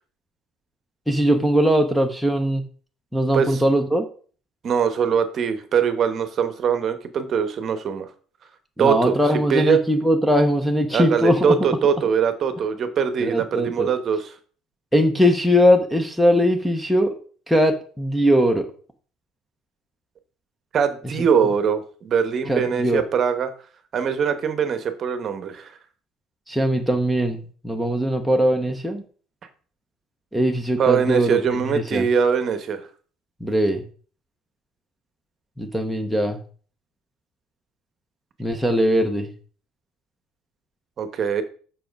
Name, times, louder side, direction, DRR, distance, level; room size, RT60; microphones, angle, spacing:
voice 1, 1.1-2.6 3.1-4.1 8.8-11.5 13.2-13.9 14.9-17.1 17.5-18.7 22.5-23.0 26.5-29.0 30.3-32.1 33.4-33.8 35.6-36.4 38.4-39.3, equal, ahead, 6 dB, 0.7 m, -20 dB
voice 2, 4.6-8.1 8.8-9.1 9.5-9.8 10.9-14.3 20.7-23.5 23.9-25.7 30.8-32.8 41.0-41.4, right 7 dB, 30° right, 10 dB, 1.0 m, -22 dB
7.6 x 5.8 x 5.1 m, 0.42 s
cardioid pair, 175°, 0 cm